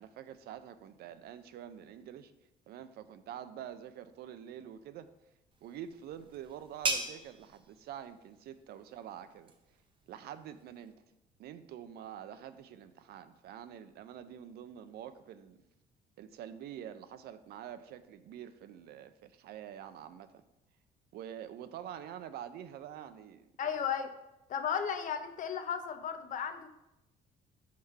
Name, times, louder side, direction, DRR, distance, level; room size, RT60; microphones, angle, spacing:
voice 1, 0.0-2.3 2.7-5.1 5.6-9.5 10.1-11.0 11.4-15.6 16.2-20.4 21.1-23.5, right 10 dB, 70° right, 11 dB, 0.5 m, -46 dB
sound 1, 5.5-10.9, right 3 dB, 30° right, 0.8 m, -41 dB
voice 2, 23.6-24.1 24.5-26.7, left 7 dB, 50° left, 8 dB, 0.6 m, -34 dB
5.8 x 3.1 x 5.4 m, 0.91 s
cardioid pair, 110°, 17 cm